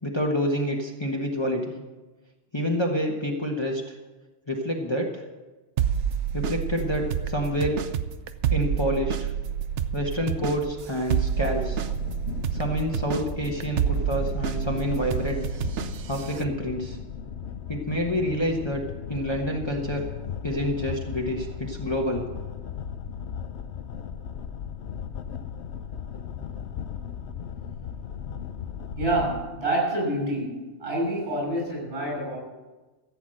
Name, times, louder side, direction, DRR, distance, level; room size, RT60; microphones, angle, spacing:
voice 1, 0.0-1.8 2.5-3.8 4.5-5.2 6.3-7.8 8.5-9.3 9.9-11.9 12.5-15.5 16.1-17.0 17.7-18.8 19.1-20.0 20.4-22.2, equal, 25° left, 0 dB, 1.3 m, -28 dB
sound 1, 5.8-16.4, right 8 dB, 75° right, 1.0 m, -28 dB
sound 2, 11.3-29.4, left 8 dB, 70° left, 1.0 m, -37 dB
voice 2, 29.0-32.4, right 1 dB, 50° right, -2 dB, 6.7 m, -27 dB
15.0 x 8.4 x 7.8 m, 1.2 s
omnidirectional pair, 1.2 m